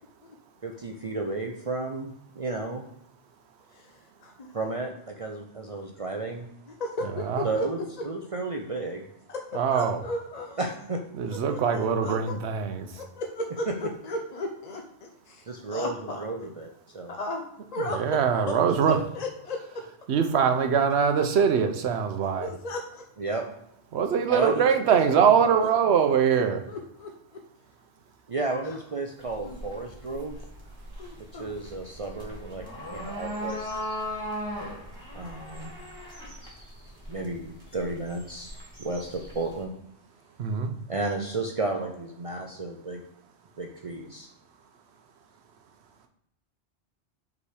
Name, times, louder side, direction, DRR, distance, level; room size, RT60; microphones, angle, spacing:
voice 1, 0.6-2.8 4.5-6.5 7.4-9.0 10.6-11.0 13.7-13.8 15.5-17.1 23.2-23.4 24.3-25.0 25.4-26.0 28.3-30.4 31.3-32.7 32.9-33.7 35.1-35.8 37.1-38.5 38.8-39.7 40.9-43.0 43.6-44.3, right 2 dB, 40° right, 1 dB, 0.5 m, -33 dB
voice 2, 3.7-4.5 6.7-7.9 9.3-10.6 11.3-12.4 12.9-16.2 17.1-17.4 17.7-18.2 18.5-18.6 18.9-19.8 22.4-23.0 26.3-27.4 28.6-28.8 29.4-29.6 31.0-31.5, left 1 dB, 45° left, 2 dB, 0.6 m, -35 dB
voice 3, 9.5-10.0 11.1-12.9 17.9-19.0 20.1-22.5 23.9-26.6 40.4-40.7, right 7 dB, 70° right, 6 dB, 1.0 m, -23 dB
sound 1, 29.2-39.6, equal, 20° right, 1.8 m, -38 dB
5.4 x 4.0 x 4.9 m, 0.77 s
omnidirectional pair, 1.1 m